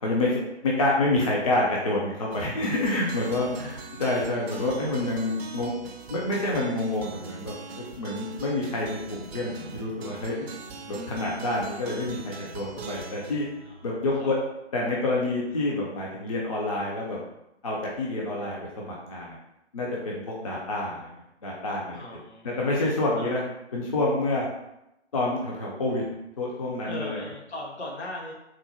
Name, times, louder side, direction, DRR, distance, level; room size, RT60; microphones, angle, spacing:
voice 1, 0.0-5.7 6.1-7.5 8.0-10.5 10.9-13.5 13.8-14.4 14.7-17.2 17.6-19.3 19.7-21.1 21.4-22.0 22.4-23.4 23.7-24.4 25.1-26.0 26.4-27.2, left 2 dB, 30° left, -3 dB, 0.4 m, -28 dB
sound 1, 2.3-14.6, right 4 dB, 60° right, 0.5 m, -42 dB
voice 2, 3.2-3.8 13.6-13.8 14.1-14.3 21.9-23.4 26.9-28.3, left 1 dB, 70° left, -2 dB, 1.1 m, -39 dB
3.6 x 2.0 x 2.7 m, 0.86 s
figure-of-eight pair, 135°, 34 cm